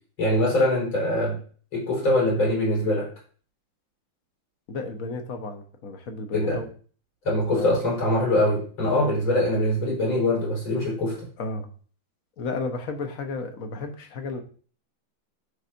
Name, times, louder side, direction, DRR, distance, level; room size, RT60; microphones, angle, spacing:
voice 1, 0.2-1.4 1.7-3.1 6.3-6.6 7.2-11.3, left 1 dB, 75° left, -5 dB, 5.3 m, -23 dB
voice 2, 4.7-6.7 7.5-7.8 11.4-11.7 12.4-14.4, left 3 dB, 50° left, 4 dB, 1.3 m, -32 dB
12.0 x 4.7 x 2.6 m, 0.42 s
omnidirectional pair, 2.2 m